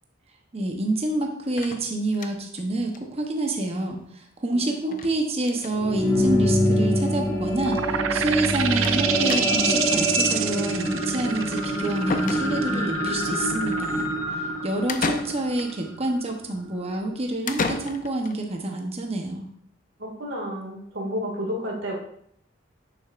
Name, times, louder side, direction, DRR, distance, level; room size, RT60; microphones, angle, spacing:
voice 1, 0.5-14.1 14.4-19.5, right 2 dB, 30° right, 2 dB, 0.8 m, -28 dB
sound 1, 1.6-2.6 2.9-3.0 3.3-3.4 3.6-3.7 4.9-5.1 5.4-5.8 6.6-6.7 7.0-7.1 8.8-9.0 9.3-9.8 11.6-11.7 12.1-12.9 14.9-15.8 17.5-18.4, left 4 dB, 40° left, 0.5 m, -32 dB
sound 2, 5.5-16.1 16.7-16.8, equal, 25° left, 2.0 m, -25 dB
sound 3, 7.6-15.0, right 10 dB, 85° right, 0.5 m, -28 dB
voice 2, 20.0-21.9, equal, 70° right, -1 dB, 2.0 m, -31 dB
8.6 x 6.7 x 2.5 m, 0.68 s
head